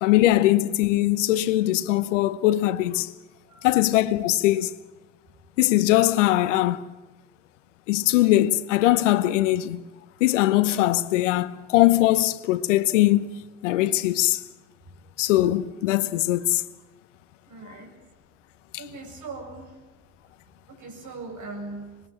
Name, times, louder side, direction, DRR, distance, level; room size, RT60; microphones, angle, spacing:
voice 1, 0.0-3.1 3.6-4.7 5.6-6.8 7.9-9.8 10.2-13.3 13.6-14.4 15.2-16.6 18.7-18.8, left 15 dB, 85° left, 1.0 m, -21 dB
voice 2, 17.5-17.9 18.8-19.7 20.7-21.8, right 3 dB, 55° right, 7.7 m, -39 dB
25.0 x 21.5 x 7.3 m
hypercardioid pair, 65°, 36 cm